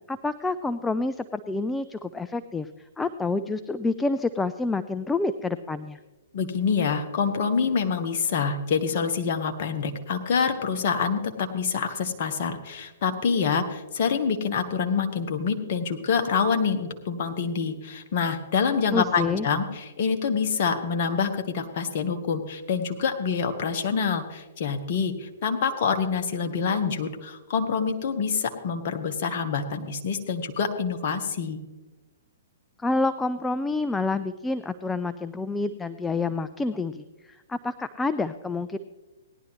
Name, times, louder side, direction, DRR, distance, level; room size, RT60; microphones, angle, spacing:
voice 1, 0.1-6.0 18.9-19.5 32.8-38.8, left 3 dB, 10° left, 11 dB, 0.3 m, -28 dB
voice 2, 6.3-31.6, left 6 dB, 50° left, 5 dB, 1.2 m, -26 dB
17.5 x 11.0 x 3.1 m, 1.1 s
figure-of-eight pair, 120°, 0 cm